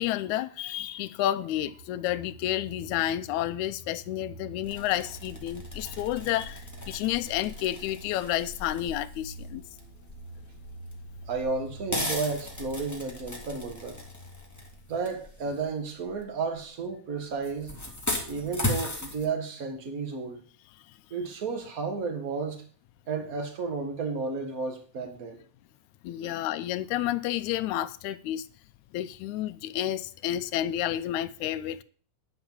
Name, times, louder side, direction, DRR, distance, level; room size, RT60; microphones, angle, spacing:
voice 1, 0.0-9.6 20.9-21.0 26.0-28.5 28.9-31.8, left 13 dB, 80° left, 1.9 m, -30 dB
sound 1, 1.5-14.9, right 2 dB, 60° right, 4.4 m, -47 dB
sound 2, 4.6-16.6 17.3-19.3, left 1 dB, 5° left, 1.4 m, -37 dB
voice 2, 11.3-14.0 14.9-17.7 18.3-20.4 21.1-22.6 23.1-25.4 26.2-26.3, right 4 dB, 35° right, 1.6 m, -32 dB
10.5 x 5.1 x 7.3 m
omnidirectional pair, 3.7 m